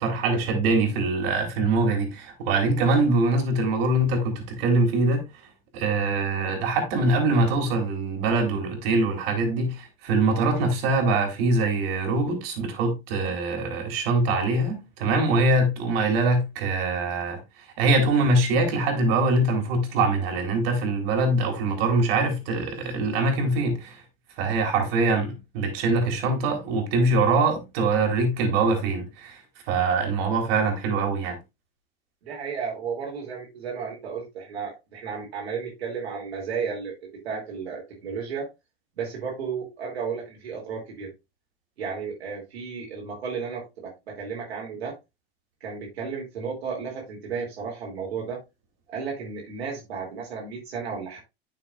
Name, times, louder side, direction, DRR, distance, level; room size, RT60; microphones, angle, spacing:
voice 1, 0.0-5.2 5.7-17.4 17.8-24.0 24.4-29.4 29.7-31.4, right 2 dB, 70° right, 3.3 m, -23 dB
voice 2, 32.2-36.9 37.2-38.5 39.0-41.1 41.8-44.9 45.6-48.4 48.9-51.2, right 6 dB, 85° right, 2.7 m, -33 dB
9.7 x 6.5 x 2.4 m
hypercardioid pair, 105°, 31 cm